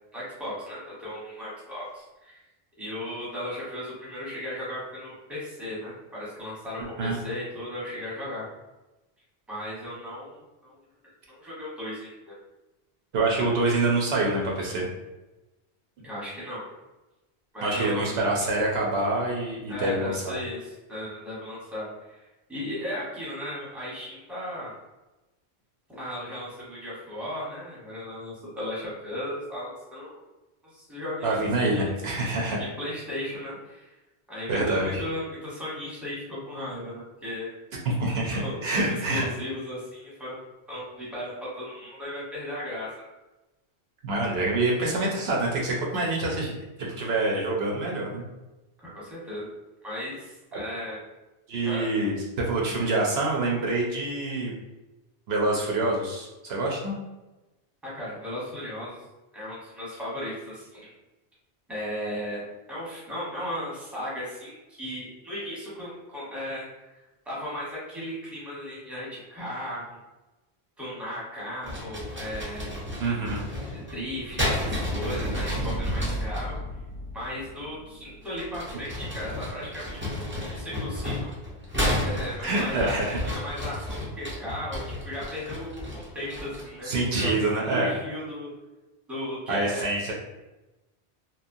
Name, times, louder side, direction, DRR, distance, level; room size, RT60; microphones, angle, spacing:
voice 1, 0.1-2.4 2.8-8.4 9.5-10.8 11.3-12.3 16.0-16.6 17.5-18.2 19.7-24.7 25.9-30.2 30.6-31.9 32.6-33.9 34.3-37.5 38.3-43.1 48.8-49.5 49.8-51.0 51.6-51.9 57.8-59.0 59.3-60.9 61.7-62.4 62.7-67.0 67.2-70.0 70.8-72.8 73.7-76.6 77.1-81.3 82.0-87.3 87.7-88.5 89.1-90.1, left 1 dB, ahead, -7 dB, 0.8 m, -36 dB
voice 2, 13.1-14.9 17.6-20.3 31.2-32.6 34.5-35.0 37.8-39.2 44.0-48.2 50.5-50.6 51.5-54.5 55.3-57.0 73.0-73.5 82.4-83.2 86.8-87.9 89.5-90.1, right 2 dB, 70° right, -2 dB, 0.8 m, -26 dB
sound 1, 71.6-76.5 78.2-86.8, left 1 dB, 20° right, 0.4 m, -32 dB
sound 2, 73.5-79.6, right 1 dB, 55° left, 0.6 m, -36 dB
2.8 x 2.2 x 2.6 m, 1.0 s
omnidirectional pair, 1.1 m